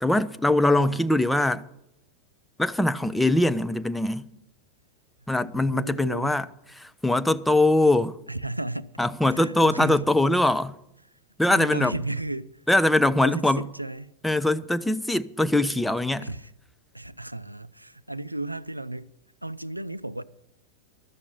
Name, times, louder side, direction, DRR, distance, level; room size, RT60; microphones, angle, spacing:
voice 1, 0.0-1.6 2.6-4.3 5.3-6.5 6.8-8.2 9.0-10.7 11.4-11.9 12.7-13.6 14.2-16.3, left 1 dB, 5° left, 0.4 m, -22 dB
voice 2, 5.6-6.3 8.3-8.9 9.3-10.1 11.5-12.6 13.2-14.1 16.2-16.5 16.9-19.1 19.4-20.2, right 2 dB, 85° right, 0.4 m, -34 dB
12.5 x 7.2 x 9.0 m
figure-of-eight pair, 90°, 0 cm